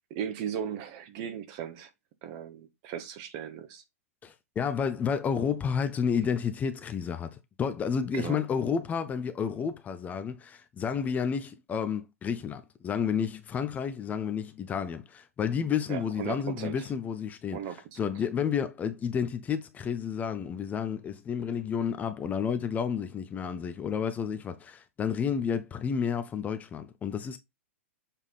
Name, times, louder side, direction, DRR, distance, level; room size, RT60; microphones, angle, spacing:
voice 1, 0.1-1.9 2.2-3.8 8.1-8.4 15.9-16.9 17.5-18.1, right 9 dB, 45° right, 1.4 m, -37 dB
voice 2, 4.2-17.6 18.0-27.4, left 7 dB, 20° left, 0.8 m, -31 dB
7.3 x 3.6 x 4.2 m
figure-of-eight pair, 105°, 8 cm